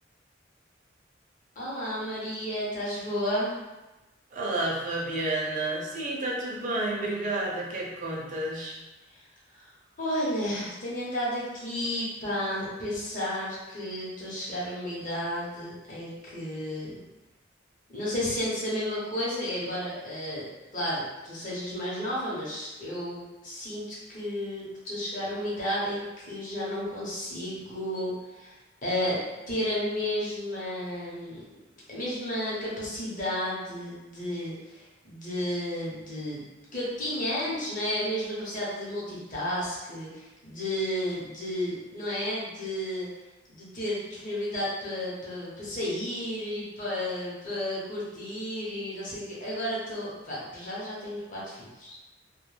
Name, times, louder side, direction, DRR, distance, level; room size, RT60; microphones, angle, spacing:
voice 1, 1.6-3.5 9.1-9.2 9.5-9.6 10.0-17.0 17.9-20.5 20.7-28.6 28.8-29.2 29.5-31.4 31.9-36.4 36.7-43.1 43.5-52.0, left 1 dB, 45° left, -7 dB, 0.8 m, -32 dB
voice 2, 4.3-8.8, right 2 dB, 40° right, -3 dB, 0.5 m, -30 dB
2.2 x 2.2 x 3.1 m, 1.1 s
head